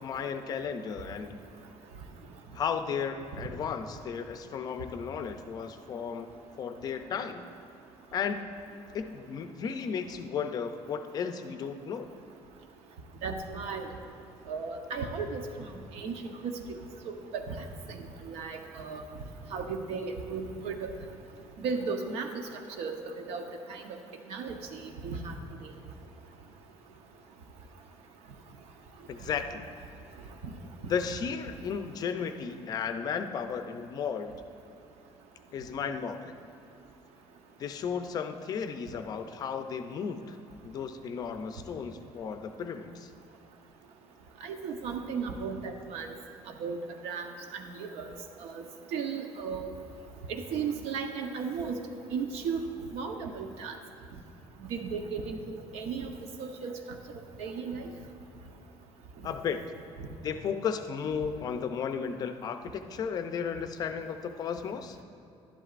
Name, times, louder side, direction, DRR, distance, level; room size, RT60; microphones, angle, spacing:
voice 1, 0.0-1.4 2.5-6.3 6.6-7.4 8.1-8.5 8.9-12.1 29.1-29.7 30.9-34.4 35.5-36.3 37.6-40.4 40.6-43.1 59.2-59.6 60.2-65.0, left 6 dB, 35° left, 8 dB, 0.4 m, -34 dB
voice 2, 13.2-13.9 14.5-15.4 15.9-16.5 17.0-19.0 19.5-20.9 21.6-22.3 22.8-22.9 23.3-23.4 23.7-23.8 24.3-25.3 25.6-25.7 30.8-30.9 44.4-46.1 46.6-48.1 48.4-48.6 48.9-49.7 50.3-51.7 52.1-52.6 52.9-53.8 54.7-56.1 56.4-56.7 57.4-57.9 60.0-60.1, right 5 dB, 75° right, 5 dB, 0.9 m, -35 dB
11.5 x 11.0 x 2.5 m, 2.7 s
cardioid pair, 175°, 11 cm